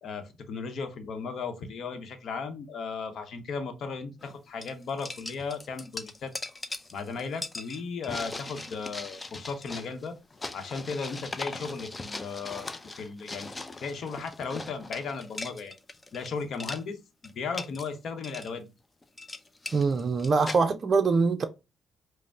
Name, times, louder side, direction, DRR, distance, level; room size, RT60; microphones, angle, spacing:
voice 1, 0.0-6.3 6.9-10.2 10.5-12.7 13.0-15.7 16.1-17.0 17.3-18.7, left 5 dB, 65° left, 0.8 m, -36 dB
sound 1, 4.2-4.3 4.6-16.3 16.5-16.8 17.2-17.9 18.2-18.5 19.0-20.6, left 2 dB, 30° left, 0.6 m, -40 dB
voice 2, 19.7-21.4, right 4 dB, 50° right, 0.4 m, -23 dB
5.1 x 2.0 x 3.4 m
supercardioid pair, 50°, 0 cm